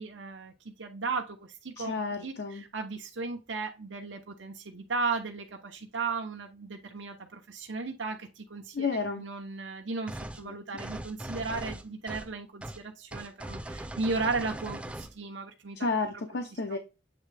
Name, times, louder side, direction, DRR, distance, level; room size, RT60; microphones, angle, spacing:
voice 1, 0.0-1.9 2.2-8.9 9.2-15.8, right 4 dB, 85° right, 0.9 m, -35 dB
voice 2, 1.8-2.6 8.7-9.2 10.4-10.8 15.8-16.8, left 4 dB, 65° left, 0.7 m, -32 dB
sound 1, 10.1-10.4 10.8-12.3 12.6-12.8 13.1-15.1, right 1 dB, 5° right, 0.5 m, -40 dB
7.9 x 3.6 x 3.3 m
head